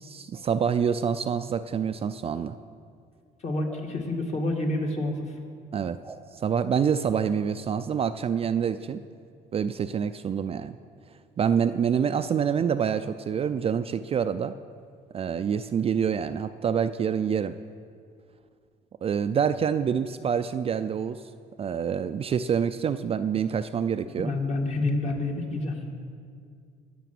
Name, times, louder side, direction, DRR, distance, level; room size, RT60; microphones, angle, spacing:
voice 1, 0.0-2.6 5.7-6.0 6.3-9.0 9.5-10.8 11.4-14.5 15.1-17.6 19.0-21.2 21.6-24.4, right 7 dB, 35° right, 10 dB, 0.4 m, -26 dB
voice 2, 3.4-5.3 24.2-25.8, left 2 dB, 40° left, 1 dB, 2.1 m, -28 dB
sound 1, 3.6-3.9 6.0-6.3 7.0-7.2, right 4 dB, 15° right, 0.8 m, -44 dB
20.5 x 6.9 x 6.0 m, 2.2 s
cardioid pair, 110°, 17 cm